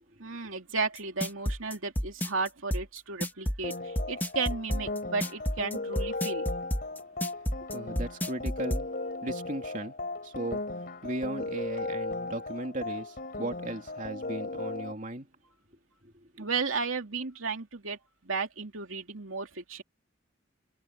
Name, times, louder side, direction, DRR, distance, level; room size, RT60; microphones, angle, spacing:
voice 1, 0.2-6.5 16.4-18.0 18.2-19.8, right 4 dB, 85° right, 2.7 m, -34 dB
sound 1, 0.9-8.8, equal, 10° left, 2.2 m, -30 dB
sound 2, 3.6-14.9, left 2 dB, 45° left, 4.4 m, -36 dB
voice 2, 7.7-8.9 9.2-10.0 10.2-15.3 16.0-16.5, right 1 dB, 40° right, 3.1 m, -37 dB
head